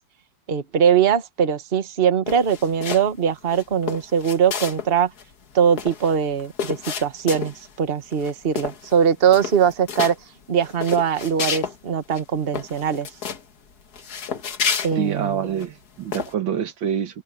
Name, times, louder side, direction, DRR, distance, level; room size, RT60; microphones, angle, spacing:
voice 1, 0.5-5.1 5.5-10.1 10.5-13.1 14.8-15.5, right 7 dB, 35° right, 1.4 m, -21 dB
sound 1, 2.3-3.2 3.5-4.9 5.2-5.3 5.5-7.7 8.1-8.3 8.6-9.0 9.3-10.1 10.6-11.8 12.1-12.2 12.5-13.4 13.9-15.7 16.1-16.3, left 6 dB, 55° left, 2.0 m, -30 dB
voice 2, 15.0-17.2, right 8 dB, 80° right, 2.1 m, -26 dB
omnidirectional pair, 2.1 m